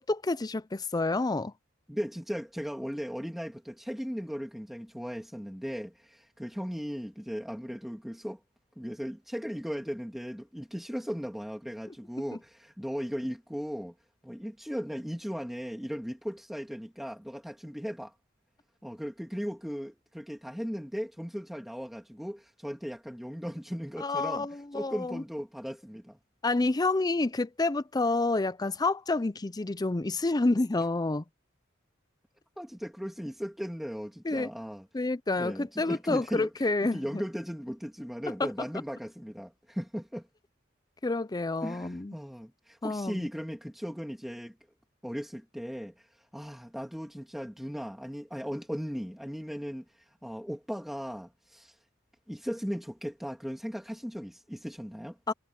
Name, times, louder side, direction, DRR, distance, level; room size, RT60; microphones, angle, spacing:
voice 1, 0.0-1.5 24.0-25.2 26.4-31.2 34.2-34.5 34.9-37.2 38.4-38.5 41.0-42.2 42.8-43.3 55.3-55.4, left 2 dB, 20° left, 0.5 m, -29 dB
voice 2, 1.9-8.4 8.8-13.9 14.2-18.1 18.8-24.5 24.7-26.2 32.6-34.9 35.3-40.3 41.6-44.6 45.0-51.7 52.3-55.2, equal, ahead, 2.7 m, -37 dB
head